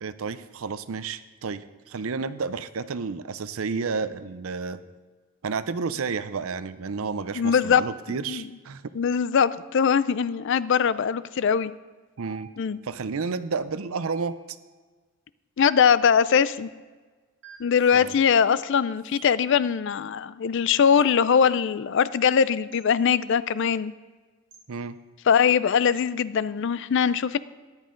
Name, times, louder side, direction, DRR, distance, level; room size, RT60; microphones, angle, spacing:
voice 1, 0.0-4.8 5.4-8.8 12.2-12.5 12.8-14.4 17.9-18.1 24.7-25.0, right 4 dB, 75° right, 13 dB, 0.6 m, -31 dB
voice 2, 7.3-7.8 8.3-8.5 8.9-11.7 12.6-12.8 15.6-16.7 17.6-23.9 25.3-27.4, left 7 dB, 55° left, 16 dB, 0.4 m, -21 dB
sound 1, 12.2-12.9 14.0-14.6 15.6-16.1 17.4-17.9 19.2-19.4 21.0-21.2 22.7-22.9 24.5-24.7, right 6 dB, 60° right, 1.9 m, -47 dB
13.5 x 10.5 x 3.8 m, 1.4 s
head